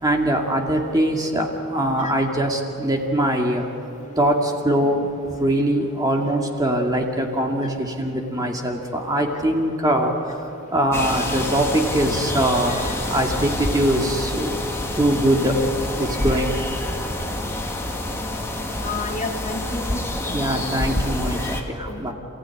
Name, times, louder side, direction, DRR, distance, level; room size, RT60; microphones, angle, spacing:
voice 1, 0.0-3.7 4.2-5.1 5.4-12.8 13.1-14.5 15.0-15.6 16.0-16.6 20.3-22.1, right 1 dB, 20° right, 1 dB, 2.3 m, -22 dB
sound 1, 10.9-21.6, left 1 dB, 10° left, 2.2 m, -27 dB
voice 2, 18.8-20.0 20.3-20.5 21.9-22.1, left 3 dB, 35° left, 2 dB, 2.2 m, -31 dB
28.0 x 16.5 x 9.9 m, 3.0 s
head